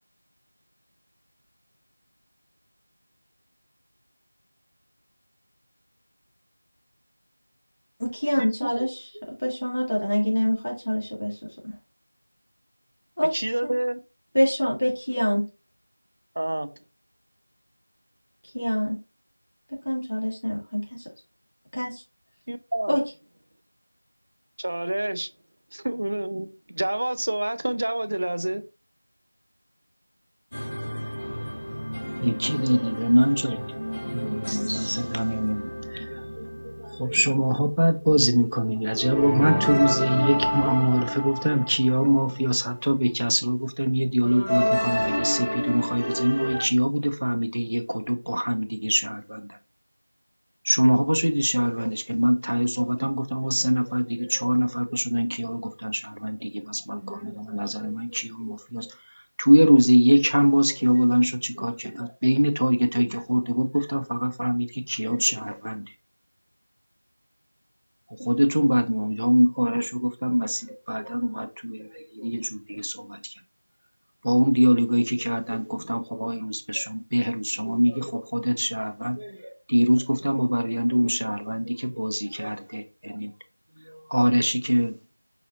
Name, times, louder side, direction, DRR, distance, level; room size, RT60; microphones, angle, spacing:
voice 1, 8.0-11.4 11.6-11.8 13.2-13.3 13.6-13.7 14.3-15.5 18.5-19.0 19.9-21.0 21.7-22.0 22.9-23.0, equal, 50° left, 1.6 m, -25 dB
voice 2, 13.3-14.0 16.4-16.7 22.5-23.0 24.6-25.3 25.7-26.5 26.8-28.7, right 1 dB, 35° right, 0.3 m, -28 dB
sound 1, 30.5-37.6 38.9-42.6 44.2-46.6, equal, 30° left, 1.8 m, -29 dB
voice 3, 32.2-33.6 34.1-49.6 50.6-65.9 68.1-73.4 74.2-83.3 83.8-84.9, equal, 80° right, 0.6 m, -24 dB
4.9 x 2.7 x 2.6 m
figure-of-eight pair, 180°, 0 cm